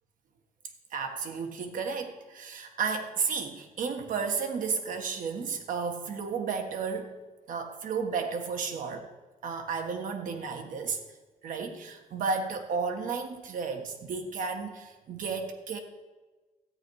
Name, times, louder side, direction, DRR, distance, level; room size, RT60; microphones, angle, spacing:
voice 1, 0.9-7.2 7.5-9.1 9.4-11.0 11.4-15.8, right 5 dB, 70° right, 5 dB, 1.6 m, -33 dB
13.5 x 8.7 x 4.8 m, 1.2 s
cardioid pair, 105°, 14 cm